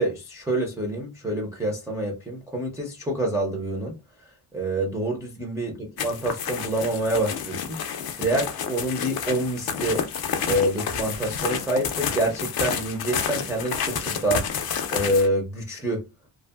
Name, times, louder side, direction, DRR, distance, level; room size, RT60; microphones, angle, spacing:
voice 1, 0.0-4.0 4.5-7.8 8.2-10.0 10.5-14.4 14.9-16.0, right 1 dB, 5° right, 0.4 m, -27 dB
sound 1, 6.0-15.3, left 7 dB, 55° left, 0.5 m, -30 dB
2.6 x 2.4 x 2.3 m
wide cardioid pair, 165°, 47 cm